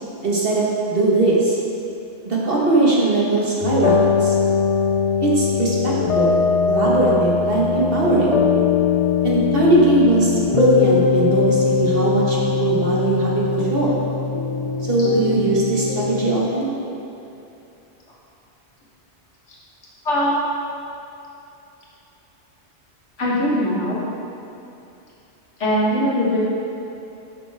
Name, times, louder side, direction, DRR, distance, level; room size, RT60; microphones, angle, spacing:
voice 1, 0.2-1.6 2.2-4.3 5.2-6.4 6.7-8.4 9.2-14.0 14.9-16.7, right 2 dB, 55° right, -5 dB, 1.6 m, -19 dB
sound 1, 3.6-16.4, left 5 dB, 60° left, 0.3 m, -21 dB
voice 2, 20.1-20.4 23.2-24.0 25.6-26.5, equal, 80° left, -7 dB, 1.9 m, -20 dB
10.5 x 6.0 x 3.5 m, 2.8 s
omnidirectional pair, 1.2 m